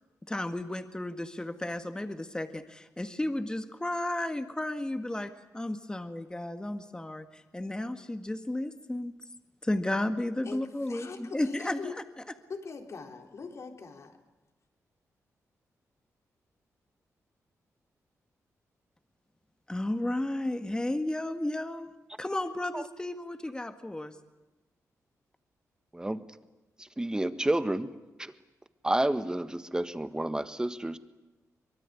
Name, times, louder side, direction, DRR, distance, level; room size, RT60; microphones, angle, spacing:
voice 1, 0.3-9.1 9.6-11.9 19.7-21.9 22.2-24.2, left 1 dB, 15° left, 8 dB, 1.7 m, -33 dB
voice 2, 10.4-12.0 12.5-14.2, left 4 dB, 55° left, 4 dB, 3.6 m, -42 dB
voice 3, 26.8-27.9 28.2-28.3 28.8-31.0, right 1 dB, 10° right, 11 dB, 1.6 m, -30 dB
24.0 x 22.5 x 9.8 m, 1.1 s
cardioid pair, 80°, 6 cm